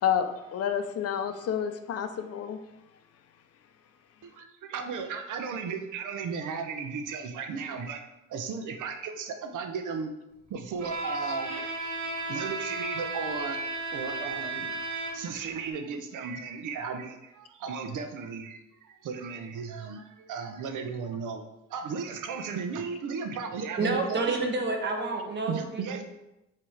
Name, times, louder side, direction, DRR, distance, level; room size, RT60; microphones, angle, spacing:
voice 1, 0.0-2.6, left 8 dB, 55° left, 9 dB, 0.5 m, -29 dB
voice 2, 4.2-8.0 8.3-10.1 10.5-11.5 12.2-13.6 13.9-21.4 21.7-24.4 25.5-26.0, right 5 dB, 90° right, 6 dB, 0.8 m, -35 dB
Bowed string instrument, 10.8-15.5, right 2 dB, 65° right, 1.9 m, -34 dB
voice 3, 23.8-26.0, right 3 dB, 35° right, 3 dB, 1.0 m, -29 dB
7.4 x 2.9 x 4.9 m, 0.94 s
cardioid pair, 165°, 30 cm